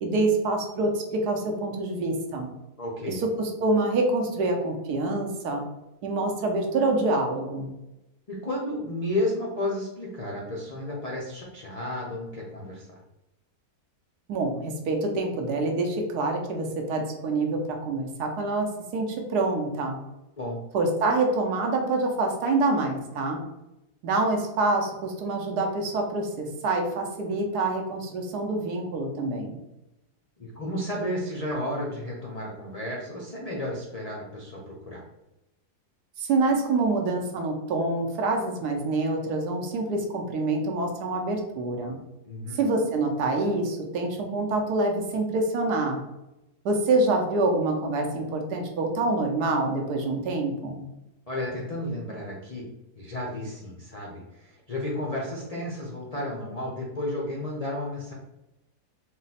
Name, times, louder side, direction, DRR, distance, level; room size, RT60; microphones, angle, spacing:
voice 1, 0.0-2.5 3.1-5.6 6.0-7.7 14.3-20.0 20.7-23.4 24.0-29.6 36.2-42.0 42.5-46.0 46.6-50.8, right 2 dB, 75° right, 3 dB, 1.3 m, -26 dB
voice 2, 2.8-3.2 8.3-12.9 20.4-20.6 30.4-35.0 42.2-42.6 51.3-52.6 53.0-58.1, left 1 dB, 85° left, -3 dB, 0.3 m, -32 dB
4.0 x 2.2 x 4.0 m, 0.93 s
omnidirectional pair, 1.7 m